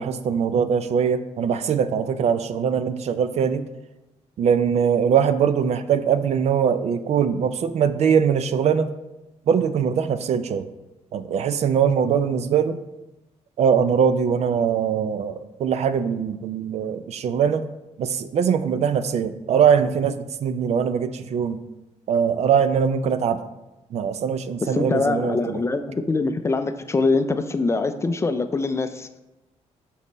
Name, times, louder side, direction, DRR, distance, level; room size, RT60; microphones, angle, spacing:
voice 1, 0.0-3.6 4.4-8.9 9.5-10.7 11.1-12.8 13.6-17.7 18.0-21.6 22.1-23.4 23.9-25.6, right 7 dB, 60° right, 12 dB, 0.4 m, -22 dB
voice 2, 24.6-29.1, left 3 dB, 20° left, 8 dB, 0.4 m, -23 dB
7.3 x 4.2 x 4.0 m, 1.0 s
cardioid pair, 130°, 12 cm